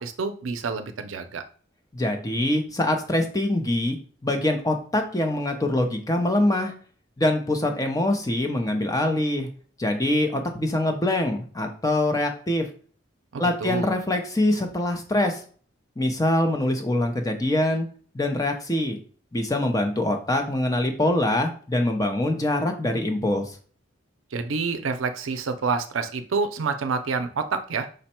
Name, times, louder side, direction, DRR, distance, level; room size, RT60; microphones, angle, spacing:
voice 1, 0.0-1.4 13.3-13.9 24.3-27.9, right 4 dB, 80° right, 8 dB, 0.5 m, -28 dB
voice 2, 1.9-4.0 4.2-6.7 7.2-9.5 9.8-12.7 13.4-15.4 16.0-17.9 18.1-19.0 19.3-23.5, left 1 dB, 15° left, 5 dB, 0.6 m, -24 dB
5.1 x 2.2 x 4.2 m, 0.43 s
head